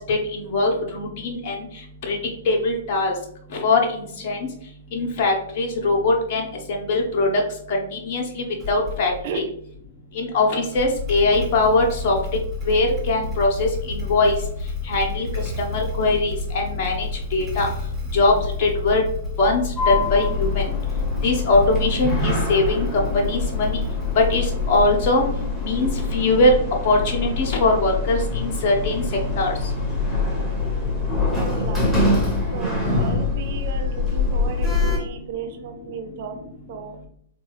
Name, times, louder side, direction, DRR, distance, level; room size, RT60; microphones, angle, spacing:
voice 1, 0.1-1.5 2.1-2.2 2.4-3.1 3.5-4.4 4.9-6.4 6.7-7.4 7.7-9.4 10.1-12.2 12.7-14.3 14.9-15.3 15.6-17.7 18.1-19.0 19.4-20.6 21.2-23.8 24.2-25.2 25.6-26.5 26.8-29.0 29.4-29.5, left 2 dB, 45° left, 0 dB, 0.9 m, -21 dB
Motorcycle / Engine starting, 8.6-9.3 10.6-25.5, left 4 dB, 20° right, 1.1 m, -30 dB
Sliding door, 19.8-35.0, left 3 dB, 10° left, 1.2 m, -24 dB
voice 2, 31.4-31.8 32.5-36.4 36.7-37.0, right 6 dB, 50° right, 6 dB, 0.5 m, -34 dB
3.8 x 2.4 x 3.1 m, 0.66 s
figure-of-eight pair, 115°, 0 cm